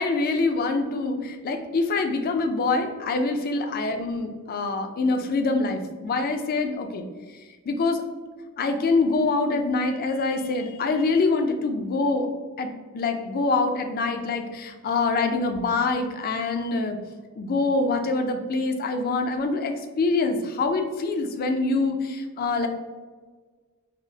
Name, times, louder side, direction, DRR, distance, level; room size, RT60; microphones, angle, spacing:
voice 1, 0.0-7.0 7.7-8.0 8.6-12.3 12.6-17.0 17.4-22.7, left 3 dB, 40° left, 6 dB, 0.3 m, -25 dB
4.8 x 2.0 x 2.6 m, 1.4 s
head